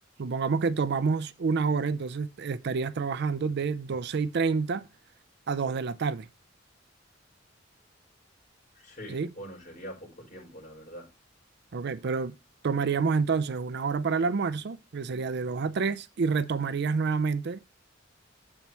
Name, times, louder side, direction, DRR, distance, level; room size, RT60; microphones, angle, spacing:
voice 1, 0.2-4.9 5.5-6.3 9.1-9.3 11.7-12.3 12.6-17.6, right 5 dB, 60° right, 0.5 m, -28 dB
voice 2, 8.7-11.1, equal, 45° left, 5.7 m, -44 dB
8.6 x 7.4 x 3.0 m
head